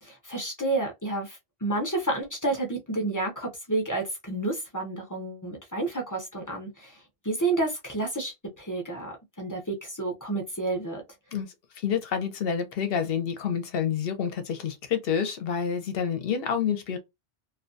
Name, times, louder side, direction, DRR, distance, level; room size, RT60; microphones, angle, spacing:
voice 1, 0.0-11.0, right 2 dB, 25° left, 0.5 m, -30 dB
voice 2, 11.3-17.0, left 7 dB, 65° left, 0.8 m, -28 dB
2.4 x 2.2 x 2.5 m
omnidirectional pair, 1.2 m